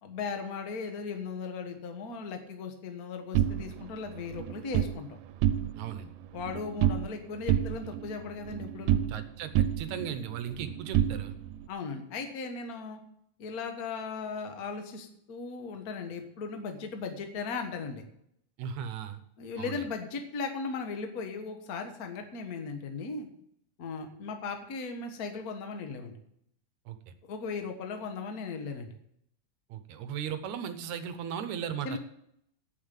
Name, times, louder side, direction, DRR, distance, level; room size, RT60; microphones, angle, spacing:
voice 1, 0.0-5.2 6.3-9.0 11.7-13.0 13.4-18.0 19.4-23.3 23.8-26.1 27.3-28.9 31.8-32.0, left 4 dB, 45° left, 5 dB, 1.2 m, -37 dB
sound 1, 3.3-5.0 5.3-6.0 6.2-7.2 7.5-9.3 9.6-11.7, right 11 dB, 85° right, 2.2 m, -29 dB
voice 2, 5.8-6.1 9.1-11.3 18.6-19.2 19.6-19.9 26.9-27.1 29.7-32.0, right 8 dB, 70° right, 10 dB, 2.1 m, -37 dB
8.5 x 8.3 x 9.1 m, 0.73 s
omnidirectional pair, 3.7 m